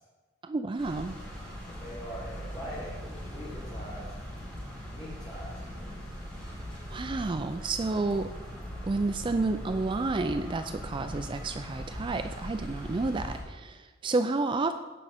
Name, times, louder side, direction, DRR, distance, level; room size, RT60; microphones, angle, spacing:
voice 1, 0.4-1.2 6.9-8.3 8.8-14.7, right 3 dB, 25° right, 8 dB, 0.4 m, -30 dB
sound 1, 0.8-13.4, equal, 5° left, 3.9 m, -40 dB
voice 2, 1.6-4.0 4.9-6.0, equal, 25° left, -10 dB, 3.2 m, -42 dB
17.0 x 6.0 x 4.2 m, 1.3 s
head